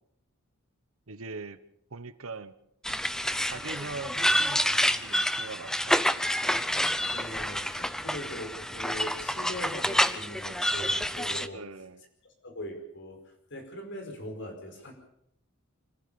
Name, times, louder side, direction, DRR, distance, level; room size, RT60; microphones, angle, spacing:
voice 1, 1.1-1.6 1.9-2.5 2.9-3.0 3.4-6.3 11.5-12.0, right 3 dB, 70° right, 14 dB, 1.1 m, -41 dB
sound 1, 2.8-11.5, equal, 5° left, 0.7 m, -28 dB
voice 2, 7.1-11.6 12.2-14.9, left 1 dB, 55° left, 4 dB, 5.0 m, -41 dB
25.0 x 15.0 x 7.0 m, 0.76 s
head